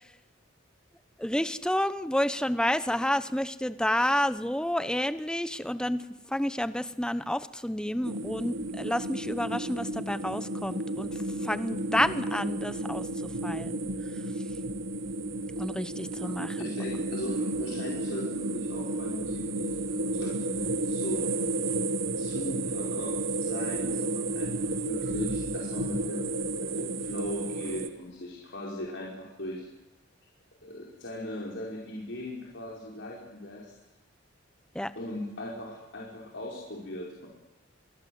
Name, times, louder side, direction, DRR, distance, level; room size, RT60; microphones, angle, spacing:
voice 1, 1.2-13.8 15.6-16.7 34.7-34.9, left 1 dB, 5° left, 13 dB, 1.0 m, -30 dB
sound 1, 8.0-27.9, right 2 dB, 85° right, 1.6 m, -32 dB
voice 2, 16.2-21.3 22.2-29.7 30.6-33.7 35.0-37.3, left 1 dB, 65° left, -3 dB, 5.4 m, -39 dB
28.5 x 23.0 x 8.0 m, 0.95 s
head